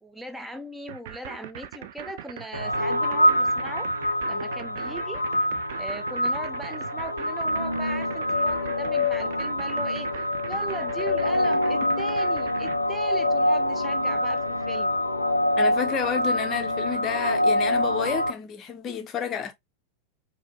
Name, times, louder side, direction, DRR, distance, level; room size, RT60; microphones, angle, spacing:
voice 1, 0.0-3.9 4.3-5.2 5.8-10.1 10.4-15.0, right 2 dB, 5° right, 0.7 m, -39 dB
sound 1, 0.9-12.8, right 11 dB, 55° right, 0.4 m, -40 dB
sound 2, 2.5-18.3, left 1 dB, 85° left, 0.4 m, -25 dB
voice 2, 15.6-19.5, left 7 dB, 30° left, 0.9 m, -30 dB
4.1 x 2.8 x 3.0 m
figure-of-eight pair, 90°, 0 cm